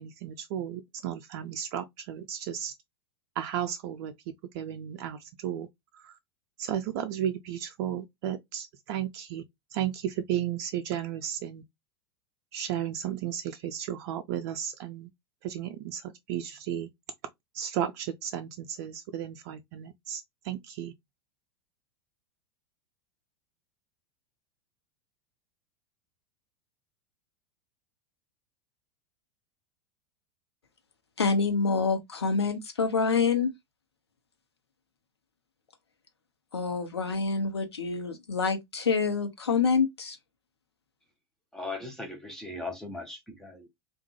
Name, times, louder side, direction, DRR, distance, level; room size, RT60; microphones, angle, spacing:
voice 1, 0.0-2.7 3.4-4.1 4.5-5.7 5.9-6.2 6.6-9.4 9.7-11.6 12.5-15.1 15.4-16.9 17.5-20.9, right 10 dB, 50° right, 0.5 m, -34 dB
voice 2, 31.2-33.5 36.5-40.2, left 5 dB, 80° left, 0.9 m, -27 dB
voice 3, 41.5-43.7, left 2 dB, 5° left, 0.9 m, -38 dB
3.6 x 2.5 x 3.1 m
figure-of-eight pair, 90°, 13 cm